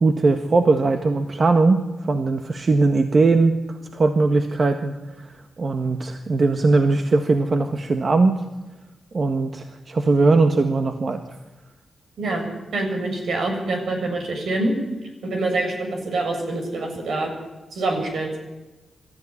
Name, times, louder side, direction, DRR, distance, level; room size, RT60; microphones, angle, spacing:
voice 1, 0.0-3.5 3.9-4.9 5.6-8.4 9.1-11.2, right 3 dB, 50° right, 6 dB, 1.6 m, -19 dB
voice 2, 12.7-14.7 15.2-17.3 17.7-18.3, right 2 dB, 80° right, 3 dB, 7.2 m, -25 dB
24.0 x 14.0 x 10.0 m, 1.1 s
cardioid pair, 70°, 0 cm